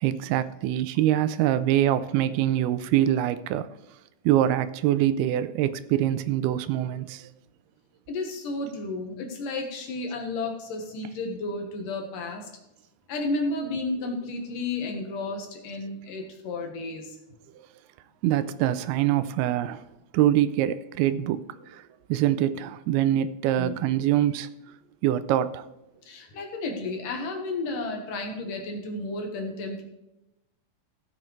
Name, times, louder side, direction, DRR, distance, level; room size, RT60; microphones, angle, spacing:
voice 1, 0.0-3.7 4.3-7.3 18.2-19.8 20.1-21.8 22.1-24.5 25.0-25.6, right 12 dB, 85° right, 13 dB, 2.5 m, -24 dB
voice 2, 8.1-12.5 13.1-17.2 23.6-23.7 26.1-29.8, left 2 dB, 65° left, 2 dB, 2.7 m, -32 dB
16.0 x 7.3 x 3.2 m, 0.95 s
omnidirectional pair, 4.4 m